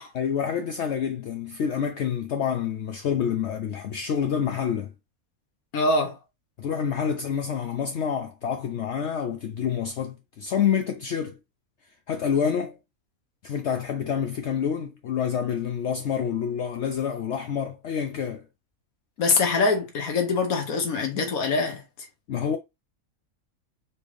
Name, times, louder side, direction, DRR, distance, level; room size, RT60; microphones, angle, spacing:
voice 1, 0.1-4.9 6.6-11.4 12.1-12.8 13.4-18.4 22.3-22.6, left 7 dB, 60° left, 0.8 m, -27 dB
voice 2, 5.7-6.2 19.2-21.8, left 3 dB, 85° left, 1.5 m, -24 dB
4.4 x 3.6 x 3.2 m
omnidirectional pair, 1.5 m